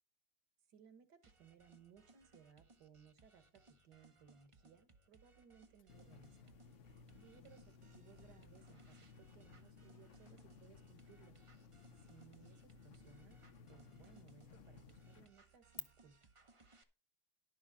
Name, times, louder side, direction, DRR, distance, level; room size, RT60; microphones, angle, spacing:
voice 1, 0.7-6.5 7.1-11.4 11.9-13.4 13.7-16.3, right 7 dB, 70° right, 10 dB, 2.0 m, -64 dB
sound 1, 1.2-16.8, right 3 dB, 30° right, 0.6 m, -67 dB
sound 2, 5.8-15.8, left 12 dB, 85° left, 1.5 m, -61 dB
sound 3, 5.9-15.3, left 5 dB, 55° left, 1.0 m, -60 dB
11.0 x 6.4 x 5.4 m, 0.33 s
omnidirectional pair, 1.9 m